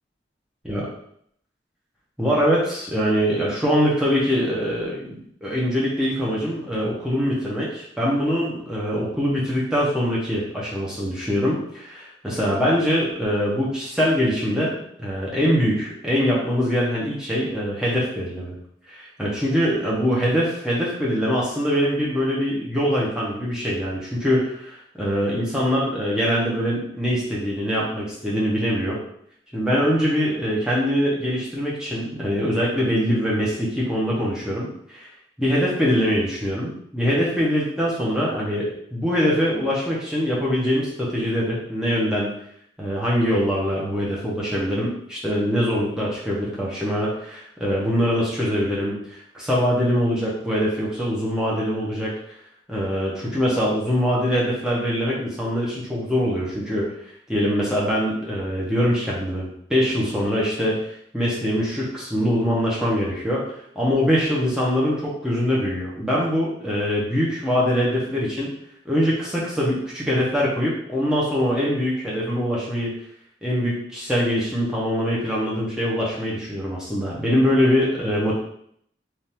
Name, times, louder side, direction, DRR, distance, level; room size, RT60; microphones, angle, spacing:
voice 1, 2.2-18.5 18.9-29.0 29.5-35.1 35.4-42.3 42.8-52.1 52.7-56.9 57.3-60.8 61.1-68.5 68.9-72.9 73.4-78.4, equal, 5° right, -6 dB, 0.7 m, -23 dB
3.4 x 2.4 x 2.8 m, 0.67 s
head